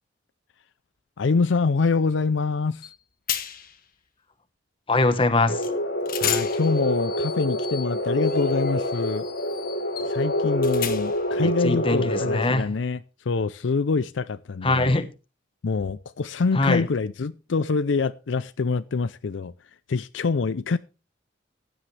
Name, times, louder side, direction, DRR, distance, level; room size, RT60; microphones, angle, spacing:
voice 1, 1.2-2.9 6.2-9.3 10.1-13.0 13.3-15.0 15.6-19.5 19.9-20.8, left 4 dB, 75° left, 0.5 m, -25 dB
sound 1, 2.8-2.9 3.3-3.8 5.6-5.7 6.1-11.3, left 9 dB, 50° left, 1.4 m, -34 dB
voice 2, 4.9-5.7 11.3-12.7 14.6-15.1 16.5-16.9, left 2 dB, 30° left, 1.1 m, -23 dB
sound 2, 5.5-12.5, left 1 dB, 90° left, 3.1 m, -26 dB
15.5 x 10.5 x 3.3 m
head